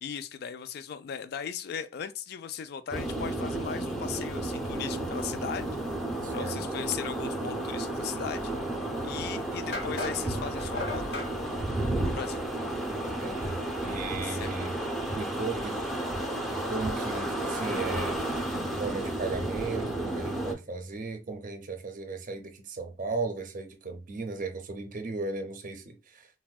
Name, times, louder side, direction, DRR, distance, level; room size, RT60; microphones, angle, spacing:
voice 1, 0.0-5.7 6.3-8.5 8.8-11.6 12.0-12.4 14.2-14.5, left 7 dB, 60° left, 0.3 m, -38 dB
sound 1, 2.9-20.5, right 1 dB, ahead, 0.5 m, -32 dB
voice 2, 6.2-6.5 13.2-14.8 15.2-15.8 16.5-18.2 18.8-26.3, right 3 dB, 45° right, 0.5 m, -36 dB
sound 2, 9.7-11.3, left 2 dB, 75° left, 1.1 m, -36 dB
3.4 x 2.2 x 2.3 m
head